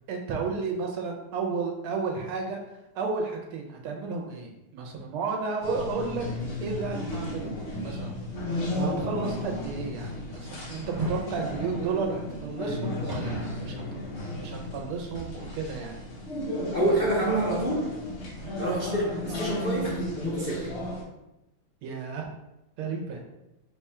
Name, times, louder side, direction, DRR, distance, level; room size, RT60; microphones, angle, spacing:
voice 1, 0.1-2.6 2.9-6.3 6.6-7.5 7.8-8.2 8.5-13.8 14.3-16.0 18.4-18.7 21.8-22.2 22.8-23.2, right 4 dB, 85° right, 1 dB, 1.7 m, -32 dB
sound 1, 5.6-21.0, left 1 dB, 55° left, 0.7 m, -34 dB
sound 2, 10.7-11.3 13.1-13.8 14.1-14.2, right 1 dB, 55° right, 1.6 m, -35 dB
voice 2, 16.7-17.9 18.6-20.7, right 1 dB, 80° left, -7 dB, 0.4 m, -27 dB
4.0 x 2.3 x 4.2 m, 0.90 s
omnidirectional pair, 2.3 m